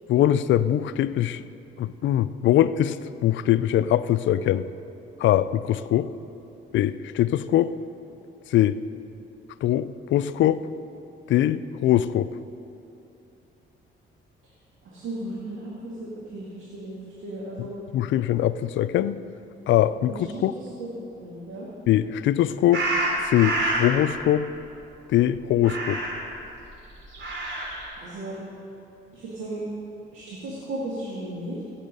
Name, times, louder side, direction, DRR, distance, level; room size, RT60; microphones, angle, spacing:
voice 1, 0.1-1.4 1.8-3.0 3.2-4.7 5.2-6.1 6.7-7.7 8.5-8.8 9.6-10.6 11.3-12.3 17.9-19.2 19.7-20.5 21.9-22.8 23.2-24.5 25.1-26.0, left 12 dB, 70° left, 14 dB, 0.4 m, -22 dB
voice 2, 14.8-17.0 17.2-17.7 20.1-20.9 21.2-21.7 28.0-28.4 29.1-29.6 30.1-31.6, right 1 dB, 85° right, -6 dB, 2.2 m, -35 dB
sound 1, 22.7-23.9 25.6-26.3 27.0-27.9, right 2 dB, 70° right, 3.1 m, -27 dB
16.5 x 7.4 x 5.4 m, 2.8 s
cardioid pair, 90°, 20 cm